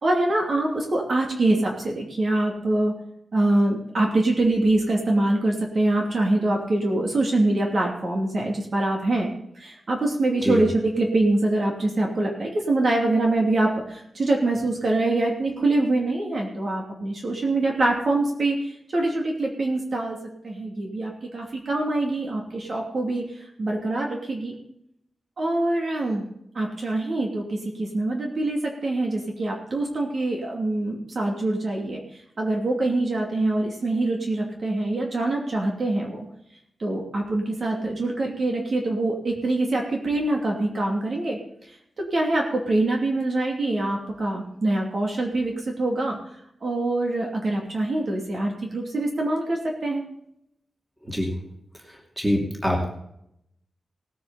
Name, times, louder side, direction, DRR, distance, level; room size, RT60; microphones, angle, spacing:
voice 1, 0.0-2.9 3.3-20.2 20.4-24.6 25.4-26.3 26.5-36.2 36.8-46.2 46.6-50.0, right 2 dB, 45° right, 0 dB, 2.8 m, -24 dB
voice 2, 52.2-52.9, equal, 5° right, 0 dB, 2.6 m, -24 dB
19.0 x 9.3 x 4.2 m, 0.75 s
wide cardioid pair, 165°, 0 cm